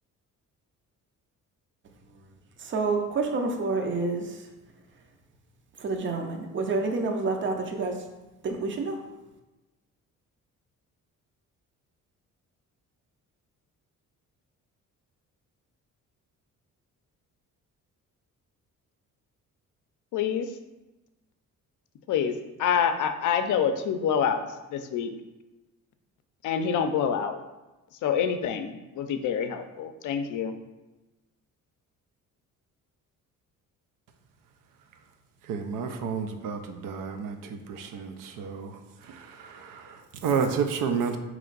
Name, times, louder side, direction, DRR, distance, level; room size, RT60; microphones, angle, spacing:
voice 1, 2.6-4.4 5.8-8.0 8.4-9.0, right 3 dB, 35° right, 4 dB, 0.6 m, -28 dB
voice 2, 20.1-20.5 22.1-22.3 22.6-24.4 24.7-25.1 26.4-27.4 28.0-30.5, left 7 dB, 65° left, 8 dB, 0.5 m, -26 dB
voice 3, 35.5-41.2, right 6 dB, 80° right, 7 dB, 0.6 m, -31 dB
4.3 x 3.1 x 3.9 m, 1.1 s
cardioid pair, 135°, 32 cm